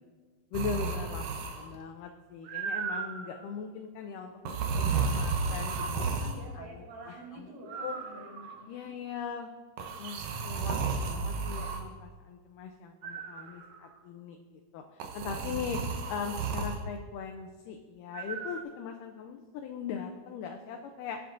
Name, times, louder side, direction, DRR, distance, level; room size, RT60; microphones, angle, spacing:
voice 1, 0.5-7.5 7.8-8.0 8.7-9.5 10.0-15.8 16.1-21.2, left 6 dB, 80° left, 4 dB, 2.1 m, -40 dB
sound 1, 0.5-1.8 2.4-3.4 4.4-6.4 7.7-8.6 9.8-11.8 13.0-13.8 15.0-16.8 18.1-18.6, right 4 dB, 70° right, 1.7 m, -33 dB
voice 2, 6.2-9.1, right 1 dB, 55° right, -4 dB, 4.3 m, -48 dB
19.0 x 7.5 x 2.6 m, 1.5 s
omnidirectional pair, 3.9 m